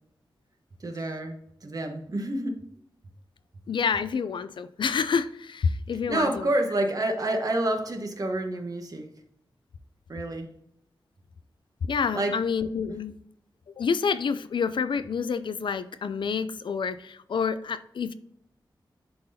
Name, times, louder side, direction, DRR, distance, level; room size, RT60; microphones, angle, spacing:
voice 1, 0.8-2.6 6.1-9.1 10.1-10.5 12.1-12.4, right 1 dB, 45° right, 4 dB, 1.1 m, -28 dB
voice 2, 3.7-6.5 11.8-13.2 13.8-18.1, left 6 dB, 75° left, 13 dB, 0.4 m, -28 dB
10.5 x 4.0 x 2.8 m, 0.78 s
wide cardioid pair, 105°, 8 cm